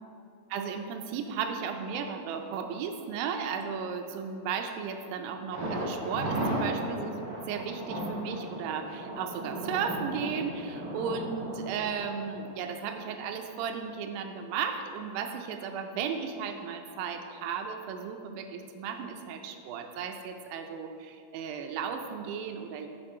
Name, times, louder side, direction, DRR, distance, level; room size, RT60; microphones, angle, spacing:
voice 1, 0.5-22.9, right 6 dB, 85° right, 5 dB, 2.3 m, -35 dB
Thunder, 5.5-13.3 13.6-13.7 14.1-14.2, right 1 dB, 65° right, 1.0 m, -35 dB
7.6 x 4.9 x 4.2 m, 2.5 s
omnidirectional pair, 4.1 m